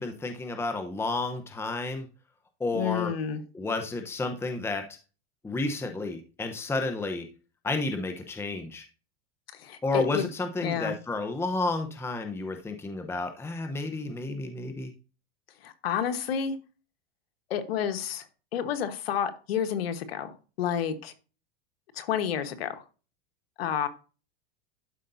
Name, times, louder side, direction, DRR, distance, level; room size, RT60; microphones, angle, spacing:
voice 1, 0.0-2.1 2.6-3.1 3.5-4.9 5.4-7.3 7.6-8.9 9.8-14.9, left 3 dB, 10° left, 6 dB, 0.8 m, -31 dB
voice 2, 2.7-3.4 9.5-10.3 10.6-11.0 15.6-16.5 17.5-18.2 18.5-21.1 21.9-22.8 23.6-23.9, left 8 dB, 90° left, 9 dB, 1.3 m, -30 dB
12.0 x 5.1 x 2.7 m, 0.34 s
supercardioid pair, 120°, 30 cm